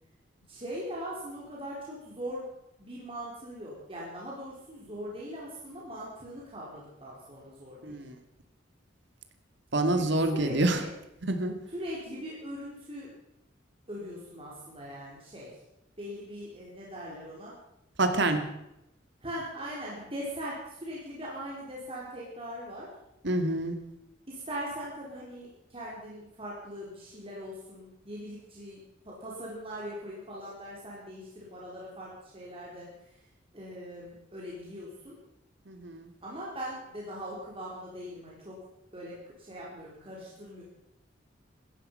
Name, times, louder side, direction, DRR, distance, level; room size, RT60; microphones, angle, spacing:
voice 1, 0.5-2.5 2.8-8.0 9.9-10.9 11.7-13.1 13.9-15.5 16.0-17.5 19.2-22.9 24.3-32.9 33.5-35.2 36.2-38.6 38.9-39.1 39.4-40.6, equal, 30° right, -5 dB, 4.4 m, -41 dB
voice 2, 7.8-8.1 9.7-10.8 11.2-11.5 18.0-18.4 23.2-23.8 35.7-36.1, right 2 dB, 65° right, 7 dB, 2.2 m, -27 dB
17.0 x 14.5 x 5.6 m, 0.86 s
head